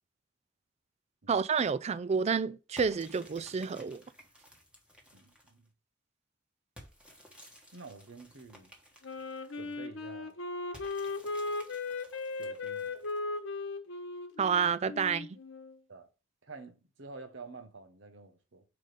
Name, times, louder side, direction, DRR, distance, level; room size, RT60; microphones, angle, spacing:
voice 1, 1.3-4.0 14.4-15.3, right 6 dB, 35° right, 0.4 m, -29 dB
sound 1, 2.8-5.7 6.8-9.7 10.7-13.4, equal, 5° right, 1.3 m, -56 dB
voice 2, 5.1-5.7 7.7-8.7 9.5-10.3 12.3-13.1 15.9-16.1 16.4-18.6, right 3 dB, 75° right, 1.0 m, -49 dB
Wind instrument woodwind instrument, 9.0-15.8, left 3 dB, 75° left, 1.0 m, -37 dB
4.9 x 4.1 x 5.0 m
head